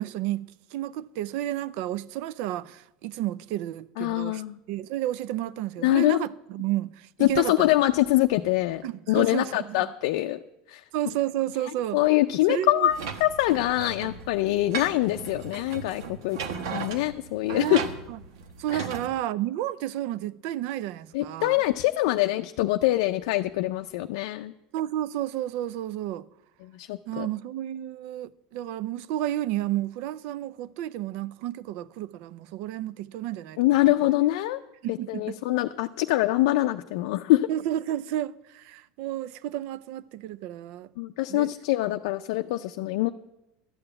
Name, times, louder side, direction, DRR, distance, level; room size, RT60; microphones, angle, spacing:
voice 1, 0.0-4.4 4.7-7.7 8.8-9.9 10.9-12.0 12.5-12.9 17.5-17.8 18.1-18.2 18.6-21.6 24.7-26.3 27.1-33.6 34.0-34.1 34.8-35.4 37.5-40.9 41.3-41.5, right 13 dB, 65° right, 0.5 m, -31 dB
voice 2, 4.0-4.6 5.8-6.2 7.2-8.8 9.1-10.4 10.7-10.8 11.9-16.4 16.7-17.8 18.7-18.8 21.1-24.5 26.6-27.3 33.6-34.6 34.9-37.5 41.0-43.1, left 16 dB, 80° left, 0.4 m, -24 dB
sound 1, 12.9-19.1, right 6 dB, 90° right, 1.2 m, -37 dB
12.0 x 7.0 x 8.7 m
supercardioid pair, 125°, 3 cm